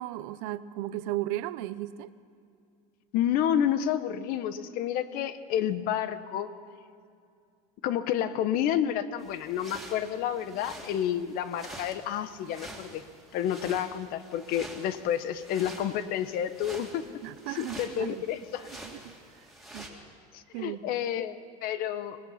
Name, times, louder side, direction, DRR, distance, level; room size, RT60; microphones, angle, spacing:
voice 1, 0.0-2.1 17.2-18.3 18.9-19.1 19.7-19.9 20.5-21.1, right 15 dB, 70° right, 15 dB, 0.8 m, -35 dB
voice 2, 3.1-6.5 7.8-13.0 13.3-17.1 17.5-18.7 20.3-22.2, left 10 dB, 55° left, 13 dB, 1.1 m, -30 dB
sound 1, 9.2-19.9, right 1 dB, ahead, 2.8 m, -47 dB
25.0 x 18.5 x 5.8 m, 2.4 s
supercardioid pair, 130°, 18 cm